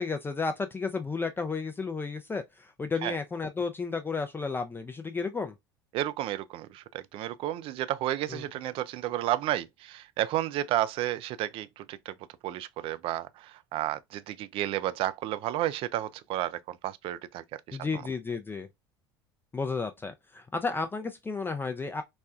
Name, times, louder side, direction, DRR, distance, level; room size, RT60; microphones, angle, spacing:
voice 1, 0.0-5.6 8.3-8.4 17.7-18.7 19.5-22.0, left 4 dB, 15° left, 0.5 m, -32 dB
voice 2, 5.9-12.2 12.4-17.8, right 13 dB, 50° right, 0.4 m, -32 dB
4.2 x 2.2 x 2.3 m
hypercardioid pair, 70°, 12 cm